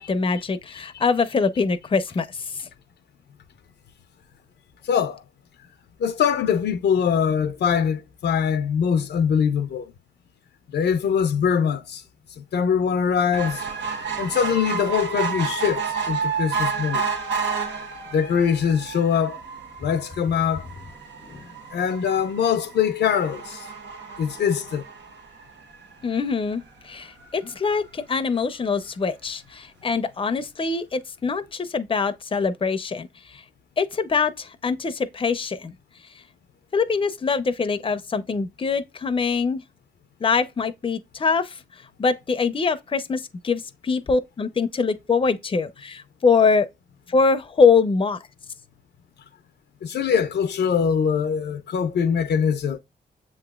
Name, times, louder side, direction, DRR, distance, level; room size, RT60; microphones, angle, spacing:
voice 1, 0.0-2.3 21.3-21.4 26.0-33.1 33.8-35.7 36.7-39.6 40.2-41.5 42.0-46.7 47.1-48.2, left 5 dB, 30° left, 0.6 m, -23 dB
voice 2, 4.8-5.2 6.0-9.9 10.7-12.0 12.4-13.6 14.2-17.1 18.1-19.4 19.8-20.7 21.7-23.7 24.2-24.8 49.8-52.8, left 7 dB, 70° left, 0.6 m, -23 dB
sound 1, 13.3-25.9 26.5-26.6 26.9-27.0 27.2-27.3, right 5 dB, 75° right, 1.1 m, -31 dB
7.3 x 3.0 x 2.3 m
cardioid pair, 70°, 18 cm